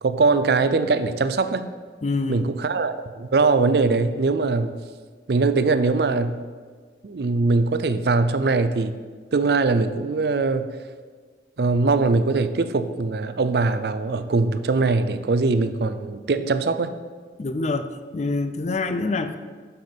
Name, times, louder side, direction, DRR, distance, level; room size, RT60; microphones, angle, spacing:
voice 1, 0.0-1.7 2.3-4.7 5.3-6.4 7.0-9.0 9.3-10.7 11.6-16.9, right 3 dB, 60° right, 11 dB, 0.5 m, -21 dB
voice 2, 2.0-2.5 17.4-19.4, left 3 dB, 40° left, 10 dB, 0.4 m, -26 dB
8.0 x 5.8 x 5.3 m, 1.5 s
head